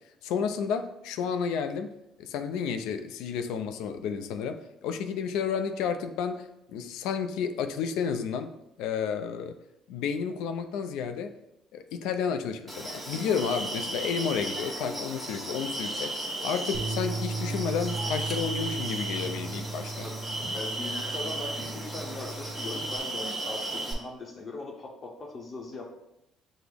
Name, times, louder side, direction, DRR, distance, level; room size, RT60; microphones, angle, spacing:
voice 1, 0.2-8.5 8.8-9.6 9.9-11.3 11.7-20.1, left 6 dB, 85° left, 8 dB, 0.3 m, -31 dB
sound 1, 12.7-23.9, right 1 dB, 5° right, 1.3 m, -35 dB
Bass guitar, 16.7-23.0, right 3 dB, 60° right, 0.7 m, -36 dB
voice 2, 20.5-25.9, left 2 dB, 40° left, 0 dB, 0.7 m, -40 dB
6.0 x 2.0 x 3.4 m, 0.86 s
cardioid pair, 85°, 0 cm